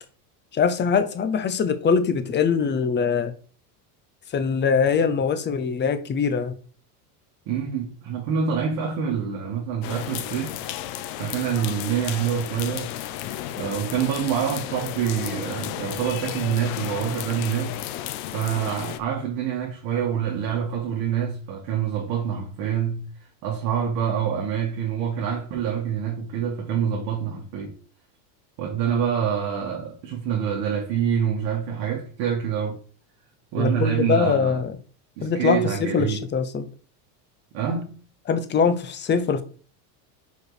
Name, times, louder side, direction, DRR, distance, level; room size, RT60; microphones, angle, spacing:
voice 1, 0.5-3.3 4.3-6.5 33.6-34.7 35.2-36.7 38.3-39.4, left 6 dB, 20° left, 0.7 m, -22 dB
voice 2, 7.5-10.6 11.2-12.9 13.5-17.7 18.3-23.1 23.4-27.8 28.6-32.8 33.5-34.6 35.2-36.2 37.5-38.0, right 8 dB, 55° right, 1.8 m, -26 dB
sound 1, 9.8-19.0, left 13 dB, 55° left, 0.8 m, -33 dB
4.8 x 4.7 x 4.9 m
supercardioid pair, 125°, 48 cm